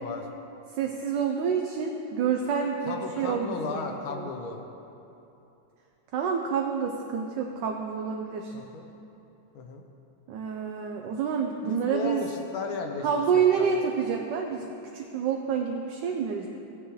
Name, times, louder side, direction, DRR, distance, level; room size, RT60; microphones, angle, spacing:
voice 1, 0.7-3.8 4.1-4.3 6.1-8.5 10.3-12.2 13.0-16.5, right 6 dB, 70° right, 2 dB, 1.2 m, -28 dB
voice 2, 2.9-4.6 8.5-8.9 9.5-9.8 11.7-13.1 13.6-13.7, left 4 dB, 90° left, 3 dB, 1.8 m, -35 dB
15.5 x 9.6 x 3.1 m, 2.9 s
omnidirectional pair, 2.2 m